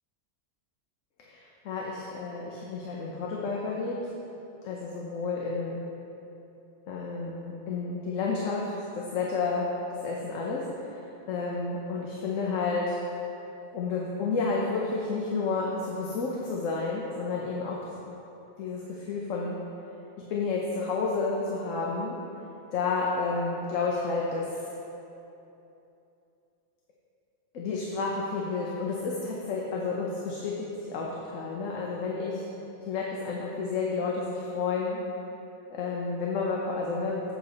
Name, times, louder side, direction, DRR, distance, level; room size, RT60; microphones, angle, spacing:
voice 1, 1.3-4.0 4.6-5.8 6.9-9.7 10.0-13.0 13.7-17.8 18.6-19.6 20.3-22.1 22.7-24.6 27.5-32.5 32.9-35.0 35.7-37.3, left 4 dB, 90° left, -2 dB, 1.1 m, -31 dB
7.8 x 4.1 x 6.5 m, 2.9 s
omnidirectional pair, 1.3 m